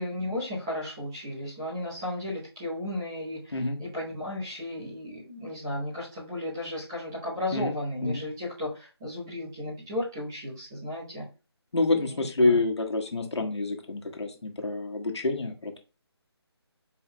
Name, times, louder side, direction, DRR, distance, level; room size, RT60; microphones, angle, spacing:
voice 1, 0.0-11.2 11.9-12.6, left 1 dB, 10° right, -8 dB, 0.9 m, -34 dB
voice 2, 3.5-3.8 7.5-7.7 8.0-8.2 11.7-15.8, left 2 dB, 80° left, 2 dB, 1.4 m, -27 dB
4.8 x 4.5 x 2.3 m, 0.32 s
figure-of-eight pair, 180°, 14 cm